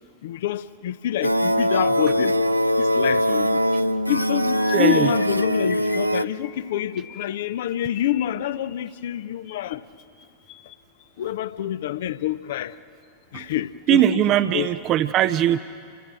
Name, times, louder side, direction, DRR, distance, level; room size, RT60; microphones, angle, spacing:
voice 1, 0.2-2.4 2.8-3.6 4.1-9.8 11.2-12.7 13.3-14.7, left 12 dB, 55° left, 0.7 m, -27 dB
sound 1, 1.2-6.2, equal, 85° right, 0.5 m, -21 dB
sound 2, 4.1-11.2 12.0-12.2 12.5-12.7 13.0-13.2, left 9 dB, 40° left, 1.5 m, -42 dB
voice 2, 4.7-5.1 13.3-13.4 13.9-15.6, right 11 dB, 35° right, 0.6 m, -20 dB
29.5 x 25.0 x 6.5 m
figure-of-eight pair, 90°, 0 cm